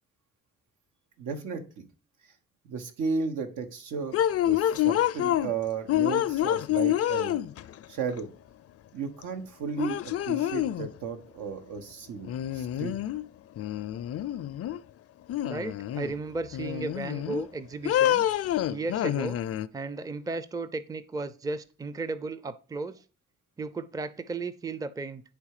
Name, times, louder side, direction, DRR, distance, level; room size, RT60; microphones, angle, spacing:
voice 1, 1.2-1.9 2.6-7.4 7.9-8.3 8.9-13.0, right 5 dB, 80° right, 1.2 m, -34 dB
sound 1, 4.1-5.5 5.9-7.8 9.2-9.3 9.8-10.9 12.2-13.2 13.6-14.8 15.3-16.1 16.5-17.5 17.8-19.7, left 12 dB, 50° left, 0.4 m, -27 dB
voice 2, 15.4-18.2 18.7-19.4 19.7-23.0 23.6-25.2, right 3 dB, 10° right, 0.5 m, -35 dB
9.7 x 3.5 x 4.8 m
cardioid pair, 90°, 30 cm